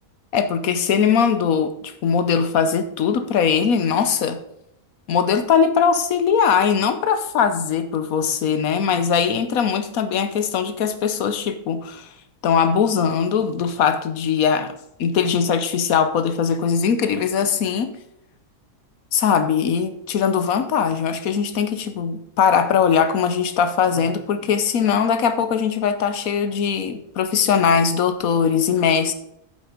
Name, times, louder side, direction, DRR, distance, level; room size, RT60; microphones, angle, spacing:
voice 1, 0.3-4.4 5.1-12.1 12.4-18.0 19.1-29.1, left 7 dB, 80° left, 10 dB, 1.3 m, -20 dB
8.0 x 7.4 x 5.0 m, 0.78 s
omnidirectional pair, 1.5 m